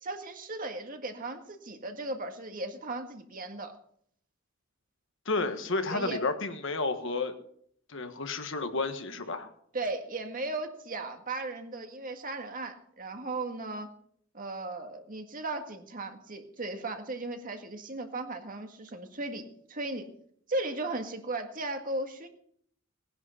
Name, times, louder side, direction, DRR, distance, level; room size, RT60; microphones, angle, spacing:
voice 1, 0.0-3.8 5.9-6.2 9.7-13.9 14.3-20.1 20.5-22.3, right 2 dB, 40° right, 5 dB, 1.8 m, -36 dB
voice 2, 5.2-7.3 7.9-9.5, left 3 dB, 65° left, 8 dB, 1.5 m, -31 dB
18.5 x 10.5 x 5.7 m, 0.65 s
head